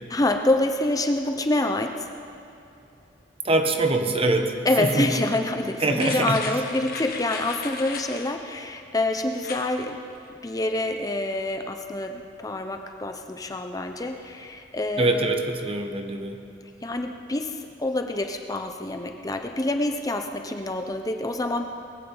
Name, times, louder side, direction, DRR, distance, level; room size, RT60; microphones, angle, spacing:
voice 1, 0.1-2.1 4.6-10.0 10.4-15.3 16.8-17.5 17.8-21.8, left 2 dB, 20° left, 5 dB, 0.6 m, -26 dB
voice 2, 3.4-5.1 5.8-6.4 15.0-16.4, right 2 dB, 30° right, 5 dB, 1.0 m, -24 dB
sound 1, 6.0-8.3 9.3-9.7 10.1-10.2, left 5 dB, 55° left, 1.5 m, -36 dB
21.0 x 16.0 x 3.9 m, 2.7 s
head